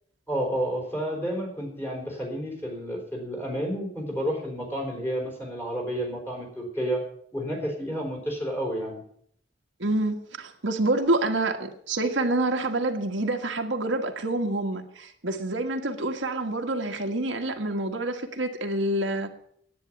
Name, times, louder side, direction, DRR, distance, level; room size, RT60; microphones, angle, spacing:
voice 1, 0.3-7.0 7.3-9.0, equal, 10° left, 4.1 m, -30 dB
voice 2, 9.8-19.3, right 2 dB, 85° right, 1.6 m, -27 dB
10.5 x 9.4 x 9.1 m
head